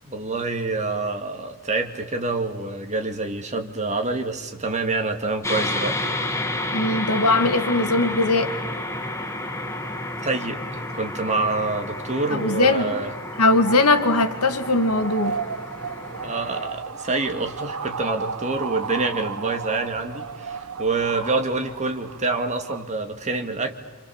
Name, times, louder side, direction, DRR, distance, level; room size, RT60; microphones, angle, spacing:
voice 1, 0.0-6.0 10.2-13.1 16.2-23.8, right 3 dB, 35° right, 2.3 m, -27 dB
sound 1, 5.4-16.7, left 1 dB, 15° left, 1.6 m, -31 dB
voice 2, 6.7-8.5 12.4-12.9 13.4-15.4, left 2 dB, 85° left, 2.1 m, -20 dB
sound 2, 13.2-22.9, right 5 dB, 90° right, 1.1 m, -34 dB
28.5 x 28.0 x 7.2 m
head